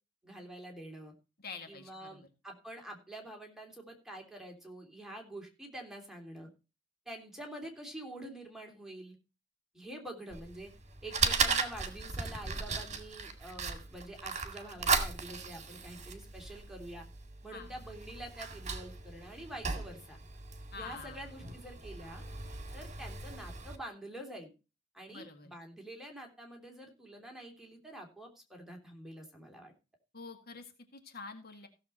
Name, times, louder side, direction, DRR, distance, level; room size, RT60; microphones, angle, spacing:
voice 1, 0.2-1.1 1.7-6.5 7.0-9.2 9.7-10.7 11.0-17.0 17.4-20.2 20.7-22.2 22.7-24.5 24.9-29.7, right 1 dB, ahead, 1 dB, 3.1 m, -47 dB
voice 2, 1.4-2.3 17.5-17.8 20.7-21.5 25.1-25.6 30.1-31.7, left 4 dB, 50° left, 6 dB, 1.8 m, -47 dB
Fire, 10.3-23.8, right 5 dB, 35° right, 2.0 m, -37 dB
16.0 x 7.1 x 4.2 m, 0.30 s
head